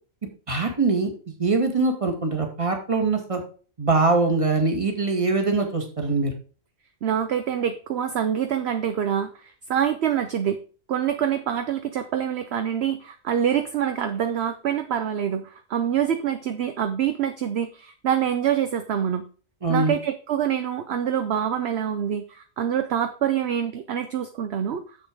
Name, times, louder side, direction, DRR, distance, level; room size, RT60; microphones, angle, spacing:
voice 1, 0.5-1.1 1.4-3.4 3.8-6.3 19.6-19.9, right 3 dB, 25° right, 3 dB, 1.8 m, -22 dB
voice 2, 7.0-10.6 10.9-19.2 19.7-24.8, right 9 dB, 60° right, 8 dB, 0.9 m, -25 dB
7.2 x 6.5 x 5.0 m, 0.38 s
omnidirectional pair, 1.3 m